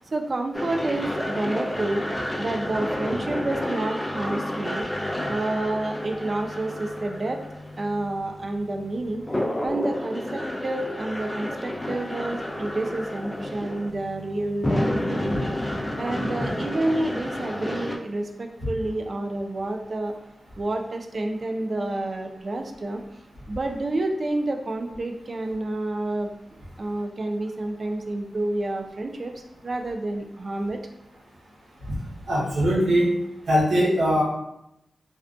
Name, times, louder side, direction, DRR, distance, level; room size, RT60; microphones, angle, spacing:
voice 1, 0.1-2.1 2.4-4.9 5.3-7.4 7.8-9.2 9.6-15.4 16.0-20.2 20.6-23.0 23.5-26.3 26.8-30.8, right 2 dB, 55° right, 4 dB, 0.3 m, -29 dB
sound 1, 0.5-18.0, left 1 dB, 20° left, 0.4 m, -30 dB
voice 2, 32.3-33.1 33.5-34.2, equal, 80° right, -5 dB, 0.7 m, -21 dB
2.4 x 2.2 x 2.4 m, 0.83 s
cardioid pair, 45°, 0 cm